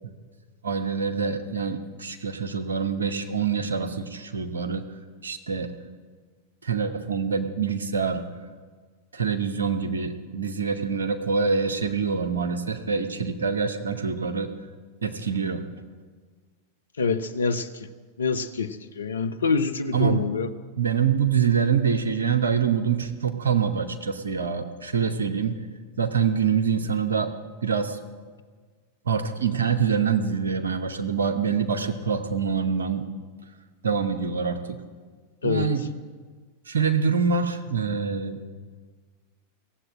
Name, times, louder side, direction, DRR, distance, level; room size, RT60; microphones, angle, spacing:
voice 1, 0.6-4.9 5.2-5.7 6.6-8.2 9.1-14.5 15.0-15.7 19.9-20.3 20.8-25.6 26.0-27.3 27.6-28.0 29.0-33.1 33.8-34.8 35.4-35.8 36.7-38.4, right 6 dB, 70° right, 7 dB, 1.0 m, -25 dB
voice 2, 17.0-17.9 18.2-20.5 35.4-35.7, left 5 dB, 70° left, 10 dB, 0.8 m, -26 dB
17.0 x 7.8 x 8.6 m, 1.5 s
figure-of-eight pair, 90°, 0 cm